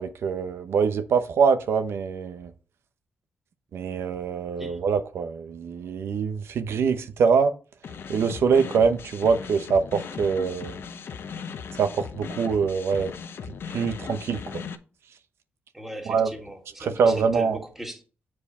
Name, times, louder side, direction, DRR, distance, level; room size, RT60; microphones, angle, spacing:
voice 1, 0.0-2.5 3.7-7.5 8.1-10.7 11.8-13.1 13.7-14.6 16.0-16.3 16.8-17.6, right 5 dB, 80° right, 0.9 m, -24 dB
sound 1, 7.8-14.8, left 6 dB, 65° left, 0.8 m, -38 dB
voice 2, 15.7-18.0, right 1 dB, 5° right, 1.9 m, -38 dB
7.4 x 4.8 x 4.3 m
cardioid pair, 100°, 4 cm